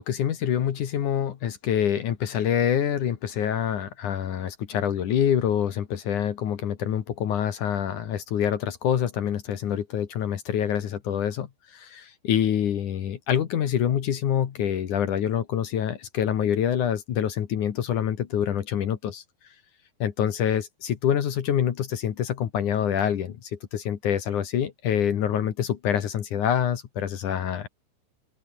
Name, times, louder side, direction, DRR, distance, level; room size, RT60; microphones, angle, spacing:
voice 1, 0.0-19.2 20.0-27.7, left 9 dB, 55° left, 2.4 m, -26 dB
open air
omnidirectional pair, 5.4 m